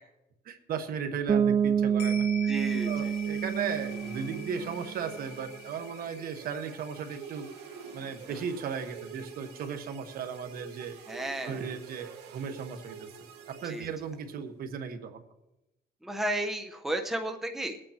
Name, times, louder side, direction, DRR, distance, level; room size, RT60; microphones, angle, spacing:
voice 1, 0.4-2.5 2.8-7.5 7.9-11.0 11.5-13.1 13.5-15.2, right 6 dB, 60° right, 8 dB, 1.3 m, -36 dB
Bass guitar, 1.3-5.0, right 8 dB, 30° right, 0.4 m, -28 dB
sound 1, 2.0-10.6 10.9-11.0, left 7 dB, 75° left, 2.2 m, -46 dB
voice 2, 2.5-3.1 8.3-8.4 11.1-11.6 13.6-13.9 16.0-17.8, right 1 dB, ahead, 4 dB, 1.0 m, -33 dB
sound 2, 2.5-14.4, right 7 dB, 90° right, 2.1 m, -47 dB
22.5 x 8.8 x 2.9 m, 0.93 s
cardioid pair, 110°, 17 cm